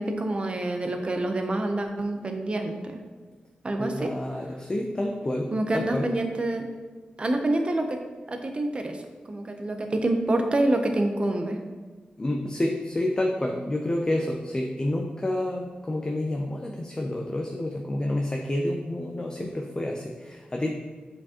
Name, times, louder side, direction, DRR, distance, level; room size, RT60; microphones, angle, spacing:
voice 1, 0.0-3.0 3.6-4.1 5.5-6.7 7.2-8.0 8.3-11.6, right 1 dB, 35° right, 5 dB, 0.7 m, -27 dB
voice 2, 3.8-6.1 12.2-20.7, left 1 dB, 25° left, 0 dB, 0.5 m, -29 dB
7.4 x 4.5 x 2.9 m, 1.4 s
wide cardioid pair, 105°, 3 cm